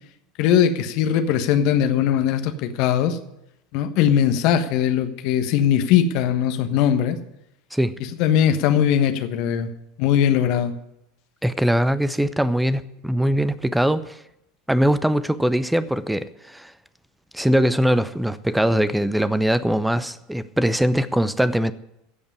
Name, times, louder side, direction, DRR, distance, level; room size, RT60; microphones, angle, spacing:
voice 1, 0.4-3.2 3.7-7.2 8.2-9.7 10.0-10.7, left 9 dB, 55° left, 1.3 m, -20 dB
voice 2, 11.4-14.2 14.7-16.7 17.3-21.7, equal, 5° right, 0.7 m, -21 dB
16.0 x 5.4 x 9.9 m
figure-of-eight pair, 80°, 0 cm